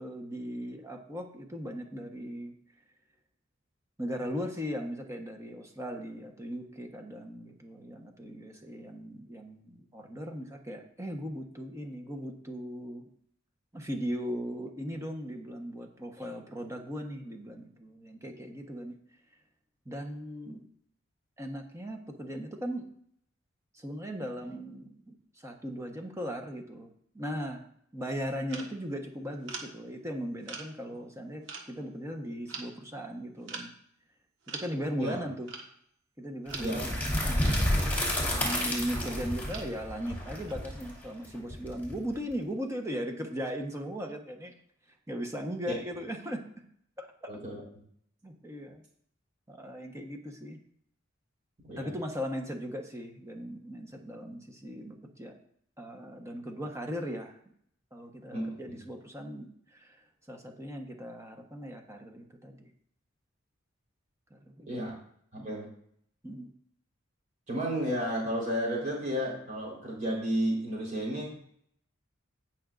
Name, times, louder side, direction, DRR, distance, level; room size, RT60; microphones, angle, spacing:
voice 1, 0.0-2.5 4.0-13.1 13.7-19.0 19.8-20.6 21.4-22.9 23.7-33.7 34.5-35.5 36.2-37.5 38.3-44.5 45.1-46.4 47.0-47.4 48.2-48.8 49.5-50.6 51.8-55.3 55.8-57.4 57.9-62.7 64.3-64.8 65.3-65.5 66.2-66.5, equal, 15° right, 3 dB, 1.1 m, -38 dB
sound 1, 28.5-28.7 29.5-29.7 30.4-30.7 31.1-31.2 31.5-31.7 32.5-32.7 33.5-33.7 34.5-34.7 35.5-35.7 36.5-36.7 37.5-37.7 38.5-38.7 39.5-39.7 40.5-40.6, right 4 dB, 65° right, 1.5 m, -41 dB
sound 2, 36.5-42.3, left 1 dB, 10° left, 2.4 m, -30 dB
voice 2, 47.3-47.6 51.6-51.9 58.3-58.8 64.7-64.9 65.3-65.7 67.5-71.3, equal, 40° right, -4 dB, 4.1 m, -32 dB
17.5 x 5.9 x 2.6 m, 0.65 s
head